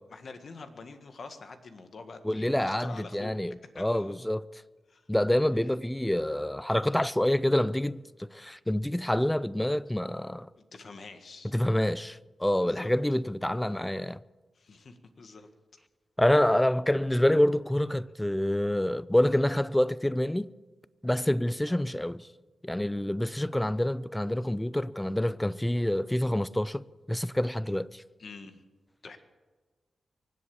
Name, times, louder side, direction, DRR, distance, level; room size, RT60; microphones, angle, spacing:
voice 1, 0.1-3.3 3.8-4.2 4.9-5.1 5.5-5.7 10.6-11.5 12.6-12.9 14.6-15.5 21.7-21.8 28.2-28.6 29.0-29.2, left 4 dB, 65° left, 1.7 m, -46 dB
voice 2, 2.2-4.4 5.1-10.5 11.5-14.2 16.2-20.5 21.0-22.3 22.6-28.0, left 1 dB, 10° left, 0.5 m, -27 dB
24.0 x 8.1 x 7.1 m
cardioid pair, 60°, 0 cm